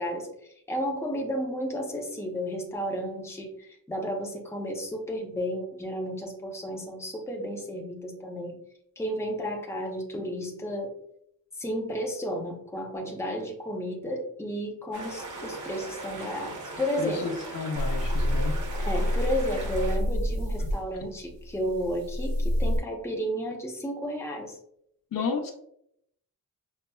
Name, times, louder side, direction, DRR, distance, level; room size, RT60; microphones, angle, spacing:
voice 1, 0.0-8.6 9.0-11.0 11.6-17.4 18.8-24.6, equal, 10° left, 0 dB, 0.6 m, -32 dB
sound 1, 14.9-20.0, right 2 dB, 60° right, 0.8 m, -39 dB
voice 2, 17.0-18.5 25.1-25.5, left 4 dB, 70° left, 3 dB, 0.6 m, -32 dB
sound 2, 17.7-22.8, left 1 dB, 85° right, 0.8 m, -28 dB
5.4 x 2.0 x 2.2 m, 0.72 s
wide cardioid pair, 125°, 35 cm